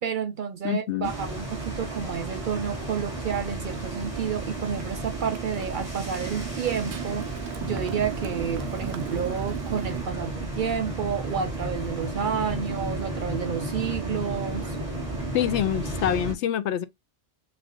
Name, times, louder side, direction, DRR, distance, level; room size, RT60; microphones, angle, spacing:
voice 1, 0.0-7.3 7.6-14.8, right 7 dB, 60° right, 0.6 m, -30 dB
voice 2, 0.6-1.1 15.3-16.9, left 10 dB, 80° left, 0.9 m, -26 dB
sound 1, 1.0-16.3, right 1 dB, 30° right, 1.7 m, -33 dB
Motorcycle, 2.8-10.1, right 11 dB, 75° right, 0.9 m, -39 dB
5.8 x 2.5 x 2.9 m
omnidirectional pair, 1.2 m